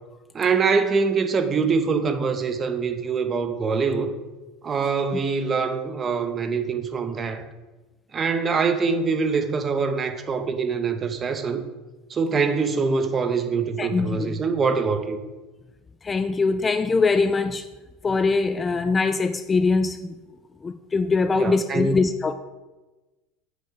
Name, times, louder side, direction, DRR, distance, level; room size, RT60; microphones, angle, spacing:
voice 1, 0.3-4.1 4.6-7.5 8.1-11.6 12.1-15.2 21.3-22.0, right 5 dB, 25° right, 0.7 m, -24 dB
voice 2, 13.8-14.4 16.0-17.7 18.0-20.2 20.6-22.3, left 4 dB, 20° left, 0.3 m, -22 dB
8.1 x 3.5 x 6.6 m
supercardioid pair, 135°, 0 cm